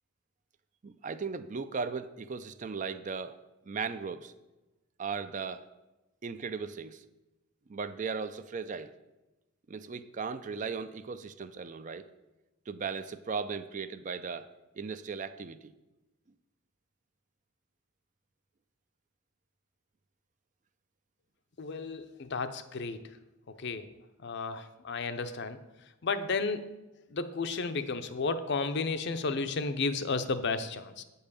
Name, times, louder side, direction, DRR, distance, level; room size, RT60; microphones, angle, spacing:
voice 1, 0.8-3.4 3.7-4.3 5.0-5.6 6.2-7.0 7.7-8.9 9.7-12.1 12.7-14.5 14.8-15.7, right 5 dB, 35° right, 12 dB, 0.4 m, -37 dB
voice 2, 21.6-23.2 23.5-23.9 24.2-26.7 27.1-31.0, left 4 dB, 55° left, 10 dB, 0.6 m, -33 dB
8.9 x 5.5 x 6.8 m, 1.0 s
head